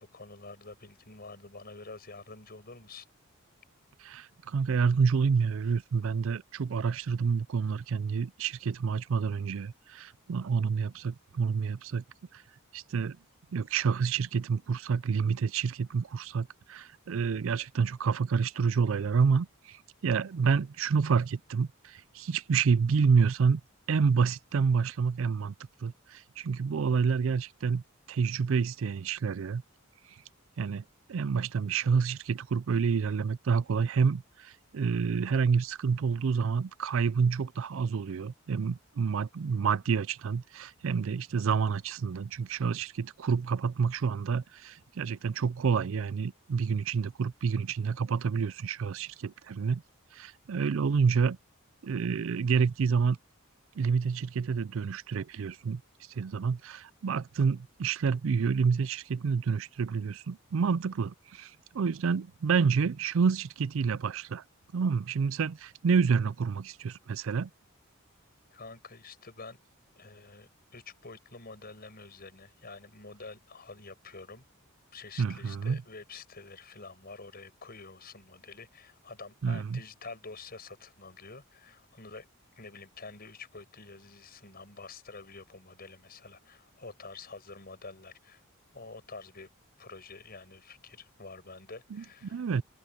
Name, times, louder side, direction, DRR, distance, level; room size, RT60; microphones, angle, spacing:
voice 1, 0.0-3.1 68.5-69.6 70.0-74.4 74.9-82.3 82.5-88.4 88.7-89.5 89.8-92.5, left 3 dB, 45° left, 7.2 m, -47 dB
voice 2, 4.0-12.0 12.3-12.4 12.7-13.2 13.5-23.6 23.9-25.5 25.8-27.8 28.1-29.6 30.6-30.8 31.1-49.8 50.1-51.4 51.8-53.2 53.8-55.8 56.1-64.4 64.7-67.5 75.2-75.8 79.4-79.8 91.9-92.6, right 5 dB, 65° right, 0.4 m, -28 dB
head